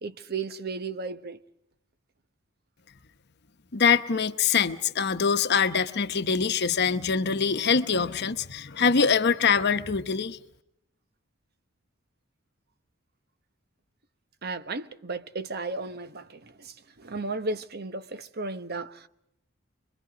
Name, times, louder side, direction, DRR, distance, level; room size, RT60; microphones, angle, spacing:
voice 1, 0.0-1.4 14.4-19.1, right 3 dB, 50° right, 1.0 m, -34 dB
voice 2, 3.7-10.4, left 6 dB, 55° left, 0.9 m, -24 dB
26.0 x 22.5 x 5.0 m
head